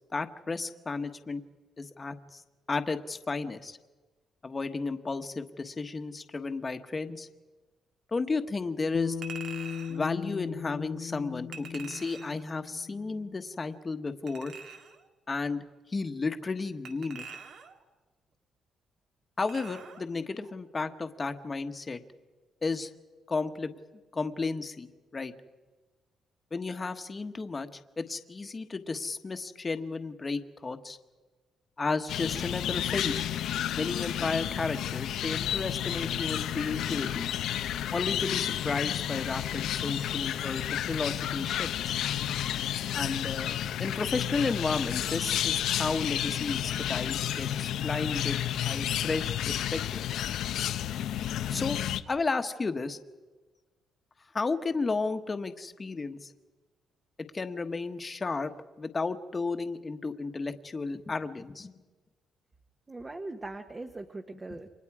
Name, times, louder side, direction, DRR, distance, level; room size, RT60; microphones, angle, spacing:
voice 1, 0.1-1.4 1.8-2.4 2.7-3.8 4.4-7.3 8.1-9.2 9.9-14.5 15.3-17.2 19.4-22.0 22.6-22.9 23.3-23.7 24.1-25.3 26.5-27.7 28.0-31.0 31.8-33.3 33.8-37.3 37.9-41.9 42.9-48.4 48.6-50.2 51.5-51.8 52.1-53.0 54.3-56.3 57.3-58.5 58.8-61.7, left 4 dB, 25° left, 8 dB, 1.3 m, -33 dB
Bass guitar, 8.9-13.4, left 7 dB, 45° left, 0.9 m, -38 dB
Chink clink, 9.2-10.0 11.5-12.4 14.3-15.0 16.8-17.8 19.4-20.0 20.4-20.5, right 6 dB, 65° right, 2.0 m, -45 dB
sound 1, 32.1-52.0, left 11 dB, 85° left, 0.8 m, -31 dB
voice 2, 62.9-64.7, right 2 dB, 20° right, 5 dB, 1.1 m, -40 dB
29.0 x 25.0 x 4.9 m, 1.3 s
cardioid pair, 135°, 0 cm